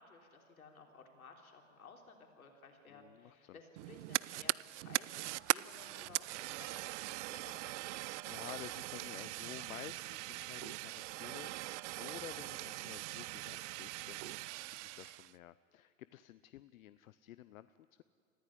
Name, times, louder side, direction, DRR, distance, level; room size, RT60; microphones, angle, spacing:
voice 1, 0.0-8.0, left 4 dB, 90° left, 2 dB, 3.4 m, -57 dB
voice 2, 2.9-3.6 7.9-18.0, left 13 dB, 75° left, 15 dB, 0.7 m, -52 dB
Fire, 3.8-15.3, right 19 dB, 60° right, 0.5 m, -41 dB
24.0 x 15.5 x 9.9 m, 2.5 s
hypercardioid pair, 100°, 42 cm